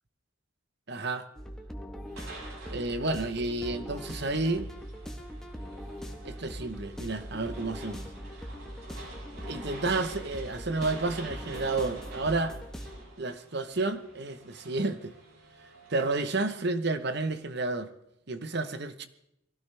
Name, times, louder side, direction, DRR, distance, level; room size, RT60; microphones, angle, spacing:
voice 1, 0.9-1.3 2.7-4.7 6.2-8.0 9.5-12.6 13.2-15.1 15.9-17.9 18.3-19.1, right 3 dB, 50° right, 1.1 m, -31 dB
sound 1, 1.4-13.0, equal, 5° left, 1.4 m, -41 dB
sound 2, 2.1-16.3, right 2 dB, 80° right, 6.5 m, -49 dB
23.0 x 16.5 x 3.5 m
head